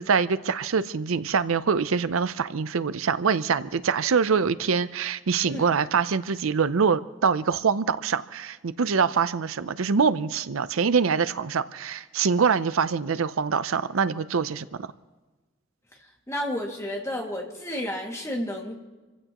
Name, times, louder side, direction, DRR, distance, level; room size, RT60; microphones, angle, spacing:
voice 1, 0.0-14.9, right 5 dB, 75° right, 14 dB, 0.6 m, -24 dB
voice 2, 16.3-18.8, left 1 dB, 15° left, 0 dB, 2.2 m, -31 dB
27.0 x 15.5 x 3.0 m, 1.2 s
head